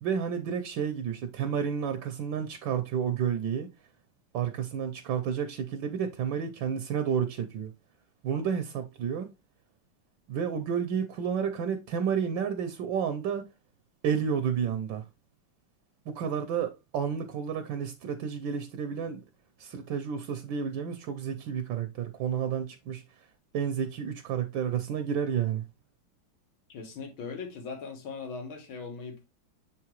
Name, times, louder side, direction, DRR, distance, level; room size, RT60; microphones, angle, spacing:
voice 1, 0.0-3.7 4.3-7.7 8.2-9.3 10.3-13.5 14.0-15.0 16.1-19.2 19.6-23.0 23.5-25.6, right 7 dB, 70° right, 1.3 m, -31 dB
voice 2, 26.7-29.2, left 5 dB, 75° left, 2.2 m, -39 dB
7.0 x 4.7 x 3.0 m
omnidirectional pair, 2.3 m